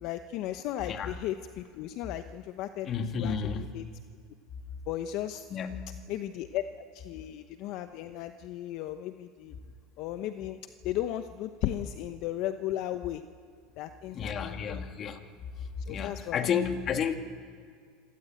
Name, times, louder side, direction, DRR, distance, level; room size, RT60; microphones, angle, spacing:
voice 1, 0.0-2.9 3.2-3.8 4.9-5.5 6.1-9.6 10.0-10.6 10.8-13.2 13.8-14.8 15.9-16.5, left 12 dB, 55° left, 9 dB, 1.0 m, -35 dB
voice 2, 2.9-3.7 5.5-5.9 14.1-15.2 15.9-17.1, left 7 dB, 35° left, 6 dB, 2.0 m, -31 dB
26.5 x 17.0 x 8.9 m, 2.2 s
supercardioid pair, 125°, 0 cm